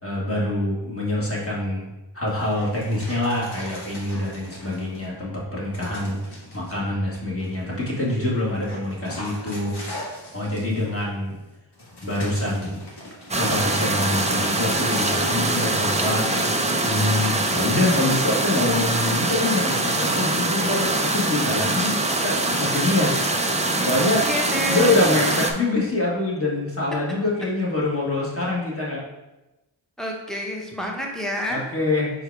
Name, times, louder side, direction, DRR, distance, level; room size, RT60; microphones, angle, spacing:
voice 1, 0.0-1.9 2.1-10.0 10.3-11.3 12.0-12.8 13.3-16.3 16.8-23.2 23.8-24.3 24.7-29.0 31.5-32.2, left 2 dB, 30° left, -4 dB, 1.5 m, -25 dB
Dog, 2.3-5.2 5.7-6.8 7.4-17.7, left 1 dB, 55° left, 1.4 m, -41 dB
sound 1, 13.3-25.5, right 2 dB, 15° right, 0.4 m, -23 dB
sound 2, 14.8-19.5, equal, 40° right, 0.8 m, -37 dB
voice 2, 23.9-25.1 30.0-31.6, equal, ahead, -1 dB, 0.9 m, -29 dB
4.7 x 2.3 x 4.6 m, 1.0 s
wide cardioid pair, 55°, 48 cm